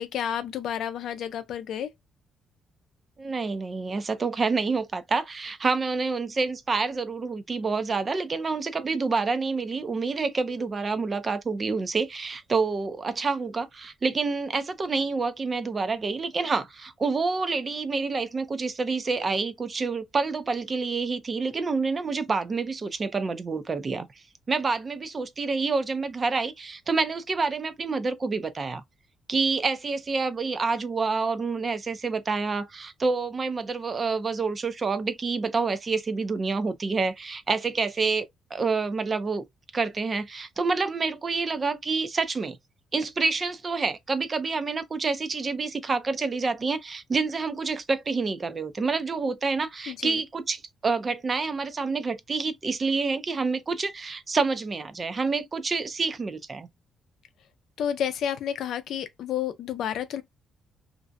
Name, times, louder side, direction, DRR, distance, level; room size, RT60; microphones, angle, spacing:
voice 1, 0.0-1.9 49.9-50.2 57.8-60.2, left 9 dB, 75° left, 0.5 m, -30 dB
voice 2, 3.2-24.1 24.5-28.8 29.3-39.4 39.7-42.6 42.9-56.7, right 4 dB, 35° right, 0.5 m, -28 dB
2.5 x 2.0 x 2.5 m
cardioid pair, 90°, 0 cm